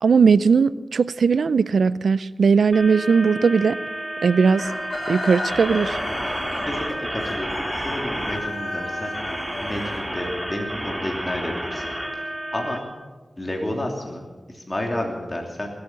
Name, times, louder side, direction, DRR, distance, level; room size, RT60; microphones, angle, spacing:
voice 1, 0.0-3.8 4.2-4.7 5.1-6.0, right 5 dB, 85° right, 18 dB, 0.4 m, -18 dB
sound 1, 2.7-12.8, right 1 dB, 10° right, 2.4 m, -31 dB
Chicken rooster, 4.5-10.5, left 2 dB, 65° left, 3.9 m, -33 dB
voice 2, 6.7-9.1 9.6-11.8 12.1-12.8 13.4-15.7, left 1 dB, 30° left, 0 dB, 3.0 m, -31 dB
20.0 x 8.6 x 7.5 m, 1.2 s
cardioid pair, 45°, 0 cm